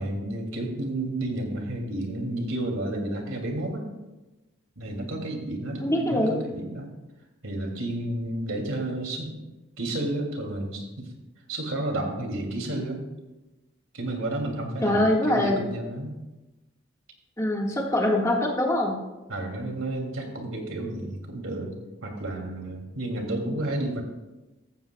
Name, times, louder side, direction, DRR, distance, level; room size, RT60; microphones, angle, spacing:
voice 1, 0.0-3.9 4.8-6.9 7.4-9.4 9.8-11.1 11.5-13.0 13.9-16.1 19.3-21.7 22.0-24.0, right 1 dB, 85° right, 2 dB, 2.6 m, -31 dB
voice 2, 5.8-6.4 14.8-15.6 17.4-19.0 23.4-23.6, left 1 dB, 15° left, -2 dB, 1.6 m, -23 dB
14.5 x 14.5 x 2.3 m, 1.1 s
head